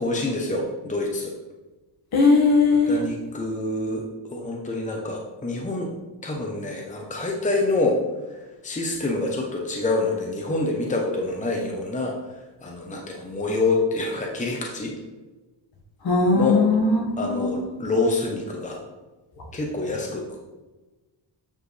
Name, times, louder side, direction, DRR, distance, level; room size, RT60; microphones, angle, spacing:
voice 1, 0.0-1.3 2.7-5.9 6.2-8.0 8.6-14.9 16.3-16.6 17.2-18.8 19.5-20.4, left 2 dB, 15° left, 0 dB, 0.9 m, -26 dB
voice 2, 2.1-3.0 16.0-17.6, left 3 dB, 55° left, -1 dB, 1.7 m, -19 dB
8.5 x 4.9 x 3.3 m, 1.2 s
cardioid pair, 105°, 45 cm